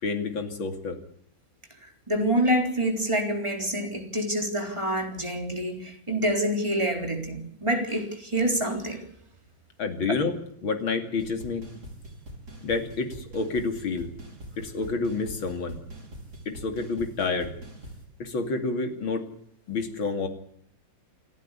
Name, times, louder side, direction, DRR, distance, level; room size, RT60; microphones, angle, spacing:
voice 1, 0.0-1.0 9.8-11.6 12.6-14.1 14.6-15.8 16.5-17.5 18.2-19.2 19.7-20.3, left 4 dB, 80° left, 3.3 m, -29 dB
voice 2, 2.1-9.0, right 1 dB, 15° right, 3.8 m, -27 dB
sound 1, 11.2-18.0, right 1 dB, 50° right, 5.8 m, -44 dB
28.5 x 11.5 x 10.0 m
omnidirectional pair, 2.1 m